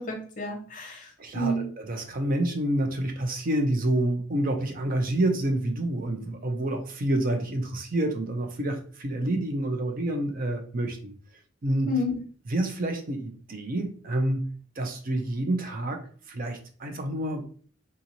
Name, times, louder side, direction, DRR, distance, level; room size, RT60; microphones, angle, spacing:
voice 1, 0.0-1.7 11.9-12.2, left 1 dB, 45° left, 2 dB, 0.9 m, -30 dB
voice 2, 1.2-11.1 11.6-11.9 12.5-14.4 14.8-17.5, right 1 dB, 45° right, 5 dB, 0.5 m, -28 dB
3.8 x 2.6 x 2.9 m, 0.44 s
head